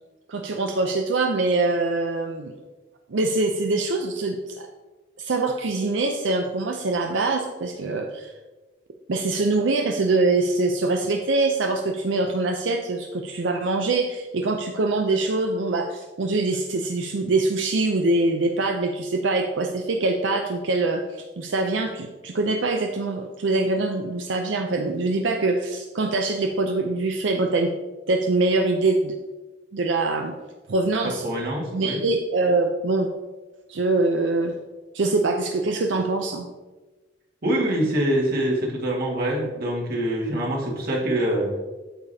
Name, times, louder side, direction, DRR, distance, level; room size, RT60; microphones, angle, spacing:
voice 1, 0.3-2.6 3.1-4.7 5.2-8.3 9.1-27.7 28.1-29.1 29.7-30.3 30.7-31.2 31.7-33.1 33.7-34.5 34.9-36.5, right 3 dB, 90° right, 3 dB, 0.6 m, -24 dB
voice 2, 31.2-32.0 37.4-41.5, right 1 dB, 55° right, -2 dB, 1.8 m, -24 dB
8.8 x 6.9 x 2.8 m, 1.2 s
head